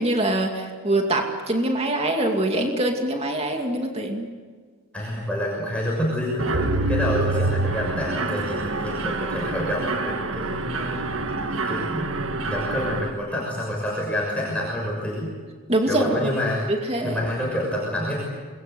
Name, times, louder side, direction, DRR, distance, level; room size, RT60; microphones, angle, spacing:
voice 1, 0.0-4.3 15.7-16.1 16.7-17.2, right 1 dB, 30° right, 2 dB, 2.4 m, -24 dB
voice 2, 4.9-11.2 11.7-12.1 12.4-15.3 15.9-16.6 17.0-18.2, equal, 5° left, -4 dB, 6.3 m, -28 dB
Mechanisms, 6.4-13.1, right 2 dB, 75° right, 1.6 m, -26 dB
28.0 x 22.0 x 8.1 m, 1.5 s
head